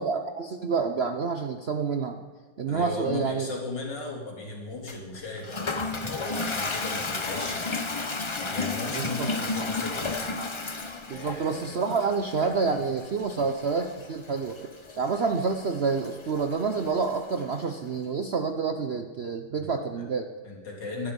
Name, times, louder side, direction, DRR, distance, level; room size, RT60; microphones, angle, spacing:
voice 1, 0.0-2.2 2.6-3.5 8.9-9.3 11.1-14.6 15.0-20.3, right 5 dB, 55° right, 6 dB, 0.7 m, -28 dB
voice 2, 2.7-7.9 8.4-10.4 11.1-11.8 19.6-20.0 20.4-21.1, left 3 dB, 75° left, 0 dB, 3.8 m, -37 dB
Toilet flush, 4.9-17.7, left 3 dB, 40° left, 0.4 m, -34 dB
23.5 x 10.5 x 5.3 m, 1.4 s
omnidirectional pair, 2.0 m